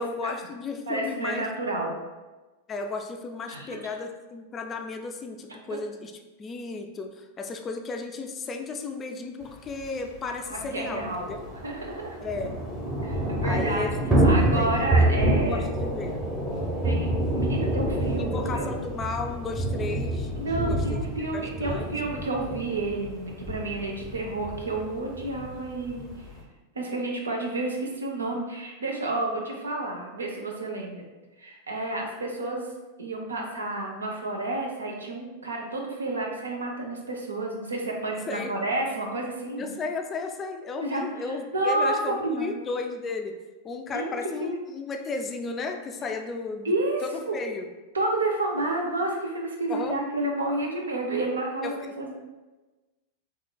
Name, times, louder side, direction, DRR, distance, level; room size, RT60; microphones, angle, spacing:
voice 1, 0.0-1.5 2.7-6.1 6.4-11.4 12.2-12.6 13.4-16.3 18.2-20.3 20.6-21.0 21.3-21.9 38.3-38.5 39.6-43.4 43.6-46.7 47.0-47.7 49.7-50.0 51.6-51.9, left 3 dB, 25° left, 5 dB, 0.3 m, -34 dB
voice 2, 0.9-2.0 3.5-3.7 10.5-12.2 13.0-13.9 14.2-15.6 16.8-17.1 17.4-18.7 20.4-26.1 26.8-31.0 31.4-32.7 33.0-39.7 40.8-41.1 41.5-42.5 43.9-44.1 44.4-44.6 46.6-47.4 47.9-51.7 52.0-52.1, right 2 dB, 75° right, 0 dB, 0.6 m, -30 dB
Thunder / Rain, 9.8-9.9 10.1-10.2 10.5-26.4, right 1 dB, 10° right, 0.9 m, -27 dB
3.6 x 3.1 x 2.2 m, 1.2 s
figure-of-eight pair, 90°, 0 cm